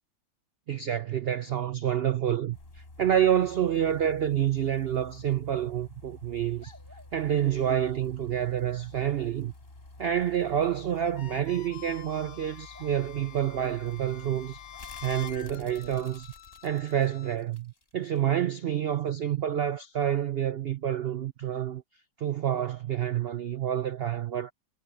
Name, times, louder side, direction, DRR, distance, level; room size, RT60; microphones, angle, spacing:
voice 1, 0.7-6.7 7.1-9.5 10.0-14.6 15.0-16.3 16.6-21.8 22.2-24.5, right 10 dB, 80° right, 0.5 m, -28 dB
sound 1, 2.5-18.2 18.6-18.7, left 2 dB, 35° left, 4.0 m, -50 dB
sound 2, 6.6-7.1 8.3-8.6 9.9-10.0 10.9-11.1 12.7-13.0 14.7-15.2 15.9-16.1, left 1 dB, 10° right, 6.7 m, -54 dB
sound 3, 11.0-17.4, left 11 dB, 65° left, 1.1 m, -47 dB
omnidirectional pair, 1.8 m